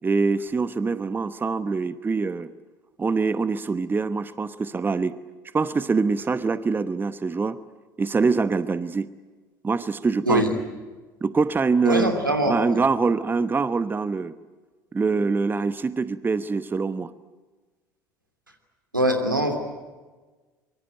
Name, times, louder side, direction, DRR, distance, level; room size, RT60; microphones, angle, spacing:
voice 1, 0.0-2.5 3.0-5.2 5.5-7.6 8.0-9.1 9.6-10.4 11.2-12.2 12.4-14.4 14.9-17.1, right 4 dB, 20° right, 14 dB, 1.0 m, -24 dB
voice 2, 11.8-12.8 18.9-19.6, right 1 dB, 85° right, 5 dB, 2.8 m, -22 dB
25.0 x 23.5 x 9.0 m, 1.3 s
figure-of-eight pair, 60°, 11 cm